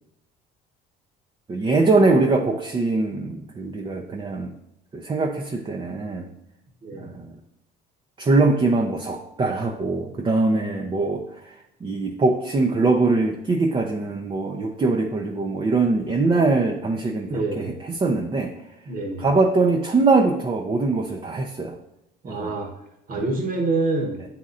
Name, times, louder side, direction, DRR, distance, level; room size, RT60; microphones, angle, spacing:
voice 1, 1.5-4.5 4.9-6.3 6.9-7.4 8.2-18.5 19.2-21.7 22.2-22.5, right 3 dB, 25° right, 1 dB, 0.6 m, -22 dB
voice 2, 6.8-7.2 17.3-17.8 18.8-19.3 22.2-22.7 23.1-24.3, right 3 dB, 45° right, 1 dB, 1.2 m, -27 dB
8.9 x 4.2 x 2.5 m, 0.85 s
supercardioid pair, 85°, 20 cm